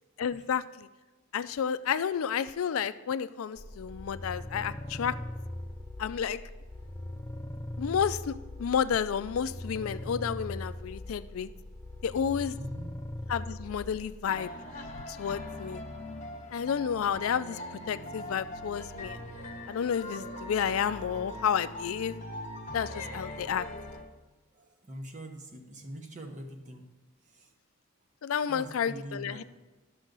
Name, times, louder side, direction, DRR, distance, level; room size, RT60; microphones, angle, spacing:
voice 1, 0.2-0.9 1.3-5.2 6.0-6.4 7.8-11.5 12.0-12.6 13.3-14.5 15.1-15.8 16.5-17.6 17.9-19.2 19.7-22.2 22.7-23.6 28.2-29.4, left 7 dB, 85° left, 14 dB, 0.4 m, -31 dB
sound 1, 3.6-14.2, left 1 dB, 10° left, 0.3 m, -40 dB
voice 2, 12.6-12.9 24.5-26.9 27.3-27.5 28.5-29.4, right 1 dB, 35° right, 3 dB, 1.0 m, -43 dB
sound 2, 14.2-24.0, left 1 dB, 35° left, 1.1 m, -41 dB
12.0 x 6.3 x 3.9 m, 1.2 s
head